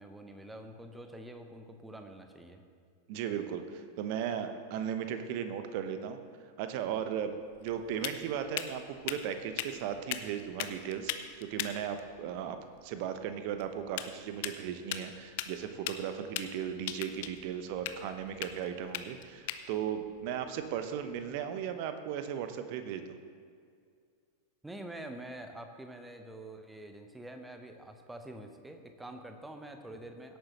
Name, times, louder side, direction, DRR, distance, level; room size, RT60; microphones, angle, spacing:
voice 1, 0.0-2.6 24.6-30.4, right 1 dB, 5° right, 6 dB, 0.9 m, -46 dB
voice 2, 3.1-6.2 6.6-23.2, right 8 dB, 45° right, 9 dB, 0.9 m, -36 dB
sound 1, 6.7-21.5, left 11 dB, 50° left, 0.6 m, -42 dB
17.0 x 8.9 x 3.0 m, 2.2 s
figure-of-eight pair, 90°, 0 cm